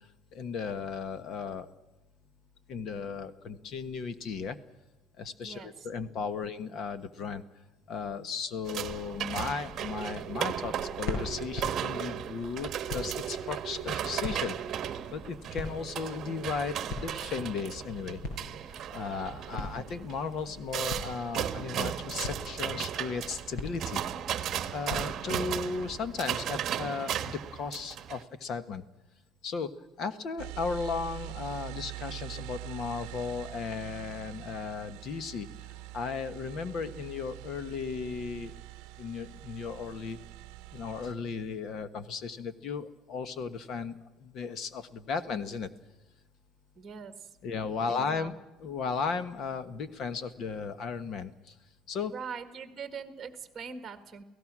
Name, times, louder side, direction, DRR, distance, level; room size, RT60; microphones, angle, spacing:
voice 1, 0.3-1.7 2.7-4.6 5.2-7.4 7.9-14.6 15.1-18.2 18.7-24.0 24.7-28.8 29.4-29.7 30.0-38.5 39.0-40.2 40.7-45.7 47.4-48.3 48.6-51.5 51.9-52.1, left 5 dB, 45° left, 12 dB, 1.3 m, -35 dB
voice 2, 5.4-6.2 46.7-47.3 47.9-48.3 52.1-54.2, right 6 dB, 20° right, 8 dB, 1.6 m, -42 dB
sound 1, 8.6-26.2, left 2 dB, 65° left, 6.3 m, -43 dB
sound 2, 8.7-28.2, right 10 dB, 40° right, 1.2 m, -36 dB
sound 3, 30.4-41.1, right 20 dB, 85° right, 0.7 m, -44 dB
29.5 x 17.0 x 6.2 m, 1.1 s
cardioid pair, 155°, 0 cm